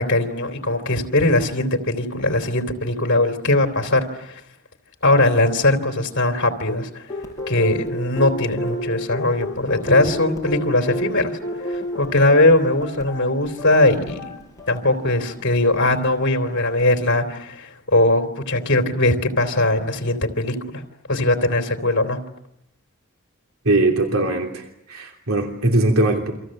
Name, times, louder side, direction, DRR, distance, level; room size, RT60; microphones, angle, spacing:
voice 1, 0.0-4.4 5.0-7.1 7.5-11.4 11.7-14.3 14.7-20.8 21.1-22.2, left 2 dB, 60° left, 6 dB, 3.2 m, -20 dB
sound 1, 7.1-16.9, equal, 15° left, 6.5 m, -31 dB
voice 2, 23.6-26.3, right 2 dB, 85° right, 3 dB, 3.2 m, -20 dB
29.0 x 25.0 x 7.7 m, 0.80 s
head